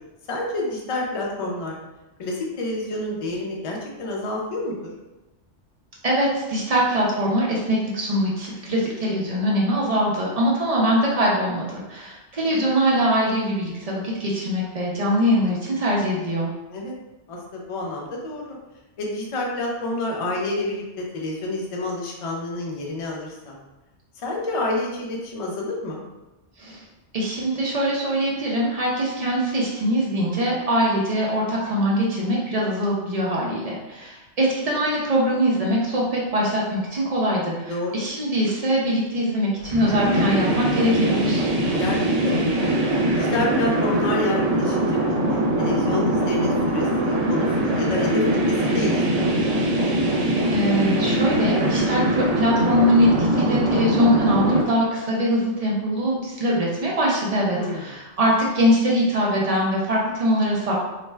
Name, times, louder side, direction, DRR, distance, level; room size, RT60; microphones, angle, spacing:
voice 1, 0.3-1.8 2.2-4.9 12.5-12.7 16.7-16.9 17.3-18.6 19.0-23.6 24.2-26.0 37.7-38.1 41.7-42.0 42.2-42.7 43.1-49.4 57.5-57.8, left 2 dB, 55° left, -2 dB, 0.3 m, -29 dB
voice 2, 6.0-16.5 26.6-26.8 27.1-41.5 50.5-60.7, equal, 50° right, -4 dB, 0.4 m, -22 dB
sound 1, 39.6-54.6, right 1 dB, 85° right, 1.0 m, -22 dB
2.4 x 2.2 x 3.2 m, 1.0 s
omnidirectional pair, 1.2 m